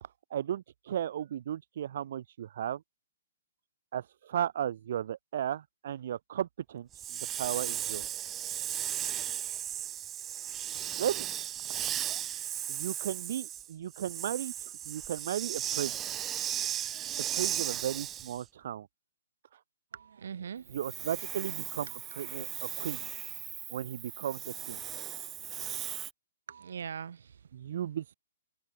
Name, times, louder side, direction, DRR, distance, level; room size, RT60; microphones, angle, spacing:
voice 1, 0.0-2.8 3.9-8.1 11.0-11.3 12.7-16.0 17.3-18.9 19.5-19.6 20.7-23.0 23.7-24.8 27.5-28.1, right 10 dB, 50° right, 0.6 m, -35 dB
Hiss, 6.9-18.4 20.7-26.1, right 11 dB, 15° right, 0.4 m, -36 dB
voice 2, 19.9-21.1 21.5-21.6 21.9-22.2 26.5-27.8, right 7 dB, 70° right, 2.3 m, -43 dB
hypercardioid pair, 160°, 0 cm